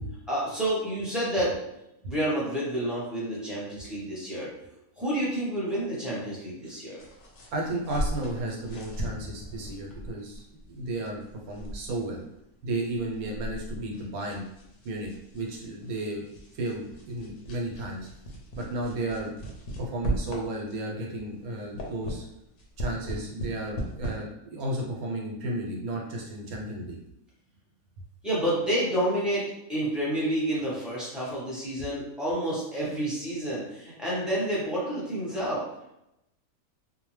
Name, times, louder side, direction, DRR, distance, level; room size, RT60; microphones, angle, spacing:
voice 1, 0.3-1.6 2.0-4.5 5.0-7.0 28.2-35.6, right 1 dB, ahead, -8 dB, 0.6 m, -29 dB
sound 1, 7.0-21.0 21.4-24.1, right 1 dB, 65° left, 0.8 m, -38 dB
voice 2, 7.5-11.2 11.5-12.2 12.6-14.4 14.8-16.3 16.5-18.1 18.5-19.3 19.8-22.2 22.8-27.0, right 1 dB, 75° right, -1 dB, 1.1 m, -33 dB
2.7 x 2.1 x 3.1 m, 0.84 s
omnidirectional pair, 1.6 m